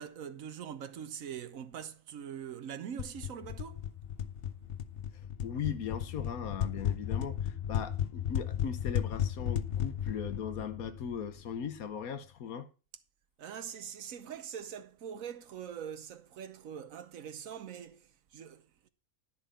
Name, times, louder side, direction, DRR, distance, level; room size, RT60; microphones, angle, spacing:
voice 1, 0.0-3.9 13.4-18.9, right 8 dB, 70° right, 1.3 m, -43 dB
sound 1, 3.0-11.6, left 9 dB, 55° left, 0.7 m, -35 dB
voice 2, 5.4-12.7, left 7 dB, 85° left, 1.5 m, -39 dB
10.5 x 6.8 x 5.4 m
omnidirectional pair, 1.5 m